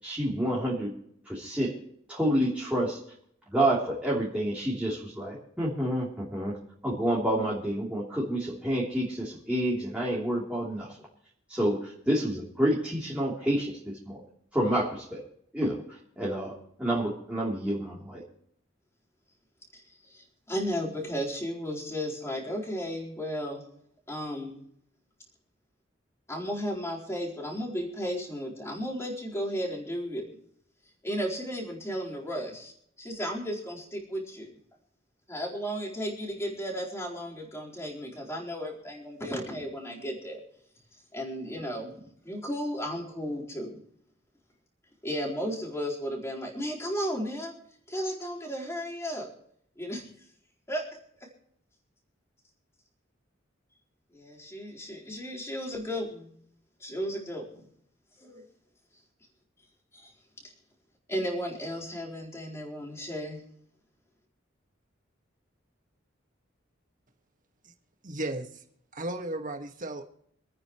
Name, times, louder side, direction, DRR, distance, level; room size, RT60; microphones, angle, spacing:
voice 1, 0.0-0.9 1.2-1.8 2.1-3.0 3.5-6.6 6.8-11.0 11.5-14.2 14.5-15.2 15.5-18.2, right 1 dB, 5° right, -6 dB, 3.3 m, -29 dB
voice 2, 19.7-23.6 24.1-24.6 26.3-30.2 31.0-32.7 33.0-34.5 35.3-40.4 41.1-42.0 42.2-43.7 45.0-47.5 47.9-49.3 49.8-50.1 50.7-50.8 51.2-51.3 54.1-56.3 56.8-57.6 58.2-58.4 59.9-60.1 61.1-63.4, equal, 15° left, -3 dB, 4.2 m, -34 dB
voice 3, 68.0-68.6 68.9-70.0, right 1 dB, 45° right, 5 dB, 1.8 m, -35 dB
27.0 x 9.6 x 3.1 m, 0.69 s
head